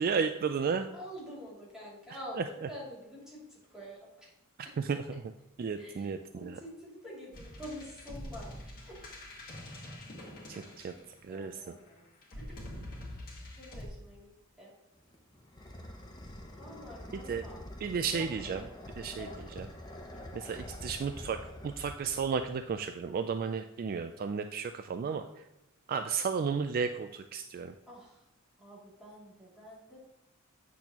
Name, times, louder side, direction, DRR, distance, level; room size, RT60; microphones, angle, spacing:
voice 1, 0.0-0.9 4.8-5.2 5.6-6.6 10.5-10.9 11.3-11.6 17.1-17.4 17.8-18.6 19.0-19.3 19.6-19.7 20.3-21.4 21.6-25.3 25.9-27.7, right 5 dB, 45° right, 8 dB, 0.3 m, -33 dB
voice 2, 0.9-4.3 4.6-4.7 5.8-9.0 10.8-11.0 11.3-12.0 12.4-12.9 13.6-14.3 14.6-14.7 16.6-17.6 18.1-18.7 19.2-20.3 27.9-28.2 28.6-30.1, equal, 5° right, -7 dB, 2.7 m, -48 dB
sound 1, 7.3-11.4 12.2-13.9, left 1 dB, 45° left, 1.8 m, -45 dB
sound 2, 15.0-22.9, left 1 dB, 20° left, 0.8 m, -46 dB
8.5 x 6.1 x 2.9 m, 0.92 s
head